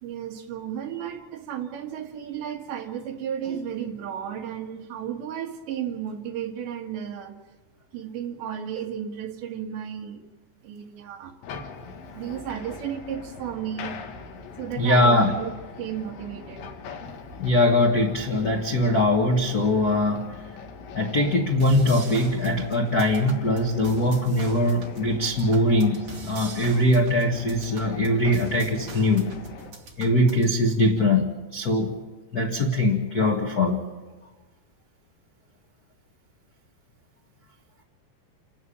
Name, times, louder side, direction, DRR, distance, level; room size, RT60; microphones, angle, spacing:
voice 1, 0.0-7.4 7.9-10.2 10.6-11.4 12.1-14.0 14.6-15.5 15.8-16.7, right 9 dB, 80° right, 3 dB, 4.0 m, -33 dB
sound 1, 11.4-29.7, left 5 dB, 80° left, 4.2 m, -42 dB
voice 2, 14.8-15.3 17.0-17.1 17.4-20.4 20.9-26.0 26.2-29.3 30.0-31.9 32.3-33.8, left 1 dB, 65° left, 1 dB, 0.9 m, -22 dB
sound 2, 21.6-30.6, right 2 dB, 35° right, 2.8 m, -42 dB
29.0 x 13.0 x 8.7 m, 1.2 s
omnidirectional pair, 5.0 m